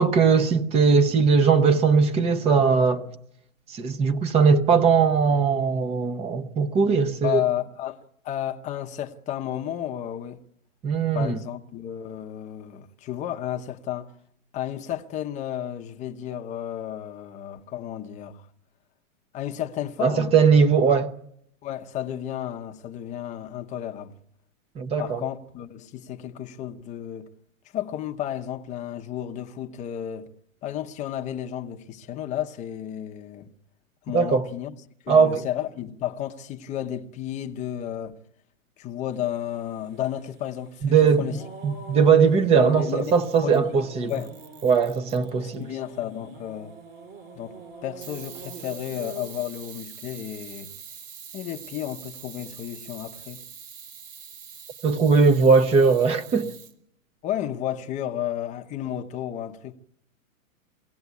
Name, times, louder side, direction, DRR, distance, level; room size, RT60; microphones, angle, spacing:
voice 1, 0.0-3.1 3.7-7.4 10.8-11.3 20.0-21.1 24.8-25.2 34.1-34.4 35.1-35.4 40.8-44.1 44.6-45.6 54.8-56.5, right 5 dB, 15° right, 0.8 m, -20 dB
voice 2, 7.2-10.4 11.1-14.1 14.5-18.5 19.3-20.3 21.6-24.2 25.0-27.3 27.7-30.3 30.6-33.5 34.0-34.7 35.0-38.2 38.8-41.4 42.5-43.8 44.1-44.4 45.4-46.8 47.3-50.7 51.3-53.4 57.2-59.8, left 11 dB, 15° left, 0.9 m, -32 dB
sound 1, 39.1-49.7 50.1-50.7, right 4 dB, 35° right, 5.9 m, -45 dB
Camera, 42.9-43.7 44.1-45.6 48.0-56.7, right 8 dB, 60° right, 3.0 m, -44 dB
23.0 x 17.5 x 8.2 m
hypercardioid pair, 155°, 42 cm